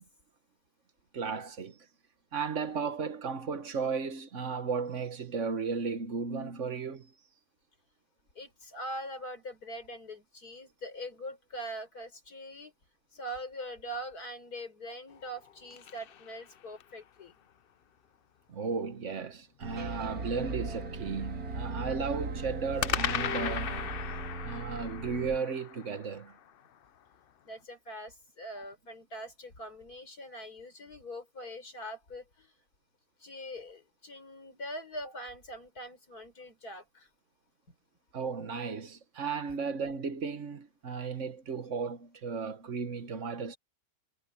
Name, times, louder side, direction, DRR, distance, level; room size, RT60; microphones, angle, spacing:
voice 1, 1.1-1.8 2.3-7.1 18.5-23.8 24.4-26.3 38.1-43.6, right 5 dB, 55° right, 1.5 m, -35 dB
voice 2, 8.4-12.7 13.1-17.3 27.5-32.5 33.2-37.1, equal, 80° left, 5.5 m, -42 dB
sound 1, 15.1-17.0 22.8-27.1, left 9 dB, 60° left, 0.6 m, -37 dB
sound 2, 19.6-25.4, right 3 dB, 70° right, 2.6 m, -38 dB
omnidirectional pair, 1.6 m